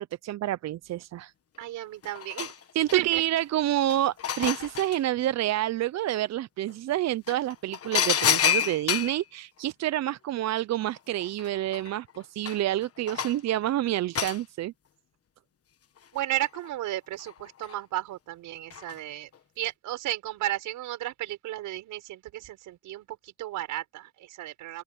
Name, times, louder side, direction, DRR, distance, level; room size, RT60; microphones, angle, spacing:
voice 1, 0.0-1.3 2.7-14.7, right 13 dB, 60° right, 0.6 m, -28 dB
sound 1, 1.6-1.7 2.0-3.2 3.7-5.0 6.7-6.8 7.3-9.2 10.8-10.9 11.2-13.5 14.1-14.4 16.0-16.7 17.2-17.7 18.7-19.0 19.3-19.4, left 8 dB, 50° left, 1.4 m, -29 dB
voice 2, 1.6-2.5 2.9-3.2 16.1-19.3 19.6-24.8, right 14 dB, 90° right, 6.1 m, -33 dB
open air
cardioid pair, 90°, 30 cm